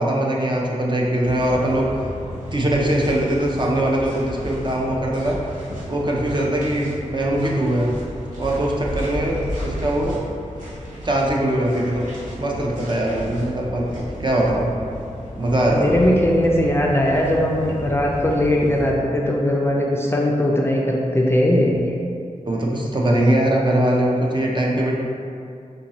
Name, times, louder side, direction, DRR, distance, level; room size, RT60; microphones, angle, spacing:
voice 1, 0.0-1.9 2.5-5.4 5.8-7.9 8.3-10.2 11.0-12.1 12.4-14.7 15.4-16.0 22.5-24.9, right 1 dB, 35° right, -2 dB, 0.5 m, -21 dB
sound 1, 1.2-18.9, equal, 85° right, 1.4 m, -33 dB
voice 2, 15.7-21.8, left 1 dB, 20° left, -2 dB, 0.3 m, -19 dB
3.7 x 2.6 x 2.9 m, 2.4 s
wide cardioid pair, 80°, 13 cm